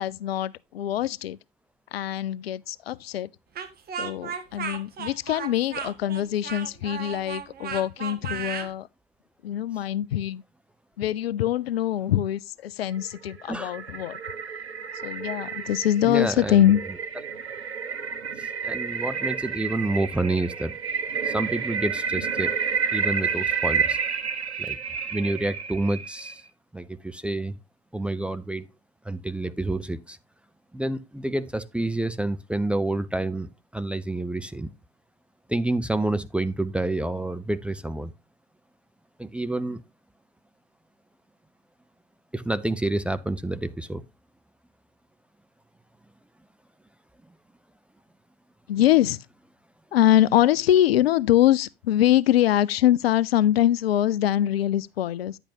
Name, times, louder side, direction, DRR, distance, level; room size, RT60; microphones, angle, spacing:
voice 1, 0.0-1.4 1.9-3.3 4.0-8.9 9.4-10.4 11.0-14.2 15.0-16.8 48.7-49.2 49.9-55.4, left 12 dB, 65° left, 0.6 m, -23 dB
Speech, 3.5-8.7, right 7 dB, 30° right, 1.6 m, -34 dB
sound 1, 13.0-26.4, right 6 dB, 80° right, 1.1 m, -30 dB
voice 2, 16.0-16.7 18.4-20.7 21.2-22.5 22.9-24.0 24.6-24.8 25.1-26.4 26.7-27.6 27.9-28.7 29.0-30.2 30.7-34.7 35.5-38.1 39.2-39.8 42.3-44.0, right 2 dB, 5° right, 0.5 m, -28 dB
10.0 x 8.0 x 2.8 m
figure-of-eight pair, 80°, 32 cm